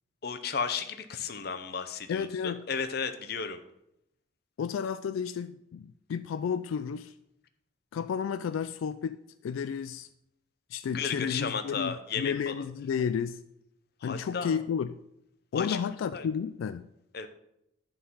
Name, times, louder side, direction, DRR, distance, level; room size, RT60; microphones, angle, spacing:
voice 1, 0.2-3.6 10.9-12.6 14.0-14.6 15.5-15.8 16.1-16.3 17.1-17.3, left 6 dB, 50° left, 9 dB, 0.7 m, -34 dB
voice 2, 2.1-2.6 4.6-7.1 7.9-9.2 9.4-10.1 10.7-13.4 14.0-15.0 15.5-16.9, left 7 dB, 90° left, 12 dB, 0.3 m, -32 dB
11.0 x 3.9 x 5.5 m, 0.80 s
head